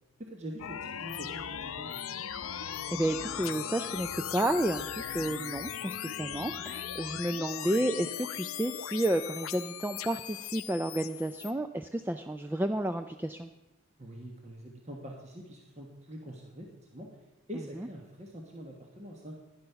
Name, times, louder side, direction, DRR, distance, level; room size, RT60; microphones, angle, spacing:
voice 1, 0.2-1.9 14.0-17.1 17.5-19.4, equal, 30° right, 0 dB, 1.3 m, -44 dB
sound 1, 0.6-11.5, left 9 dB, 80° left, 0.6 m, -38 dB
voice 2, 2.4-13.5, right 1 dB, 10° right, 8 dB, 0.3 m, -31 dB
12.0 x 10.5 x 5.7 m, 1.0 s
head